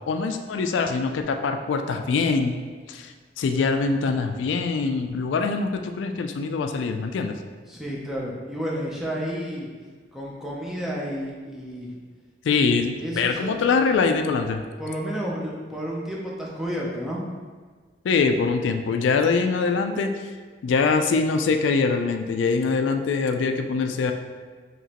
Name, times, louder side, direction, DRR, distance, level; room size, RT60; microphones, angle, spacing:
voice 1, 0.1-2.5 2.9-7.3 12.4-14.6 18.0-20.3 20.6-24.1, left 4 dB, 75° left, 6 dB, 0.3 m, -23 dB
voice 2, 7.7-9.7 10.1-12.0 12.9-13.5 14.8-17.2, equal, ahead, -4 dB, 0.5 m, -31 dB
4.9 x 3.0 x 2.9 m, 1.5 s
head